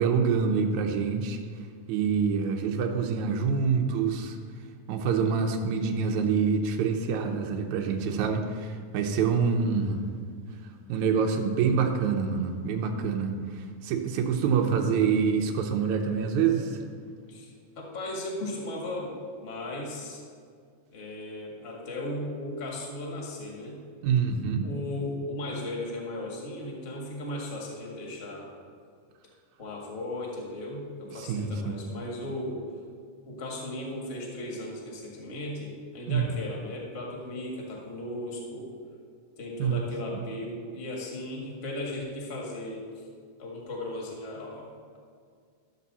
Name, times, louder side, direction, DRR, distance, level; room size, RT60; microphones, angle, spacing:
voice 1, 0.0-1.4 1.9-4.4 4.9-10.0 10.9-16.8 24.0-24.7 31.1-31.7 36.1-36.3 39.6-39.8 40.1-40.2, right 6 dB, 75° right, 2 dB, 2.0 m, -26 dB
voice 2, 14.5-15.0 17.3-19.1 19.4-20.2 20.9-23.8 24.6-28.5 29.6-32.6 33.2-38.7 39.4-43.1 43.4-44.7, left 1 dB, 30° left, -2 dB, 1.3 m, -36 dB
12.5 x 7.3 x 4.1 m, 2.1 s
omnidirectional pair, 3.7 m